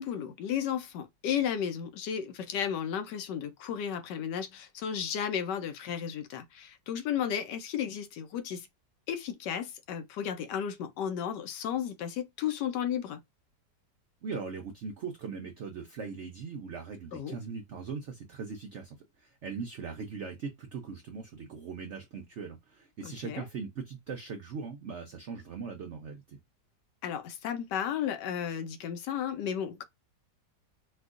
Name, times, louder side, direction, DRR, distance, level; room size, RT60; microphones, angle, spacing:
voice 1, 0.0-8.7 9.1-13.2 17.1-17.4 23.0-23.5 27.0-29.8, left 8 dB, 75° left, 1.2 m, -33 dB
voice 2, 14.2-26.4, right 5 dB, 85° right, 0.6 m, -40 dB
4.4 x 2.3 x 2.4 m
omnidirectional pair, 1.9 m